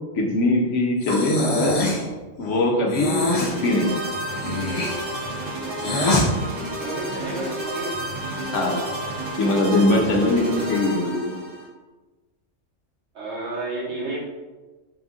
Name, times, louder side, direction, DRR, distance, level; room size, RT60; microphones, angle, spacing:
voice 1, 0.0-1.9 2.4-4.0 8.5-8.9 9.4-11.3, left 2 dB, 70° left, 1 dB, 1.1 m, -21 dB
Breathing, 1.0-2.1 2.9-3.6 4.3-6.3, left 2 dB, 40° left, 0.6 m, -24 dB
sound 1, 3.1-11.7, right 1 dB, 90° right, 1.5 m, -31 dB
voice 2, 6.8-8.0 13.1-14.2, right 2 dB, 60° right, -7 dB, 1.6 m, -31 dB
4.0 x 2.6 x 3.6 m, 1.2 s
omnidirectional pair, 1.3 m